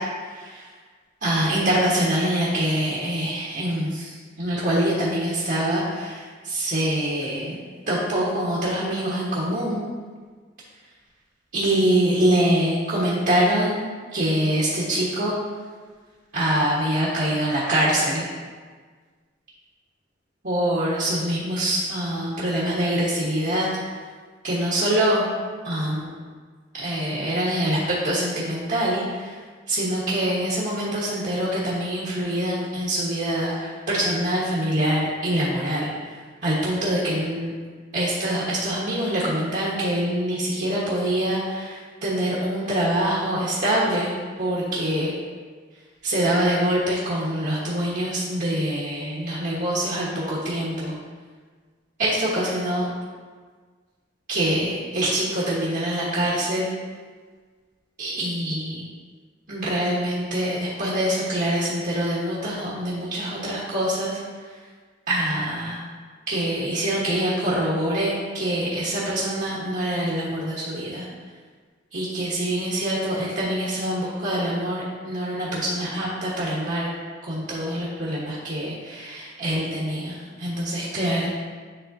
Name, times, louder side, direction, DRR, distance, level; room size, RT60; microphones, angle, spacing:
voice 1, 1.2-4.1 4.4-7.6 7.9-9.8 11.5-13.8 14.1-15.3 16.3-18.2 20.4-23.7 24.4-25.3 25.6-26.1 26.7-27.8 28.0-29.3 29.7-35.9 36.4-37.5 37.9-44.1 44.4-45.1 46.0-50.9 52.0-52.9 54.3-56.7 58.0-58.8 59.5-64.2 65.1-65.8 66.3-71.0 71.9-76.9 77.2-81.3, right 1 dB, 55° right, -8 dB, 1.3 m, -24 dB
9.9 x 3.6 x 2.7 m, 1.5 s
head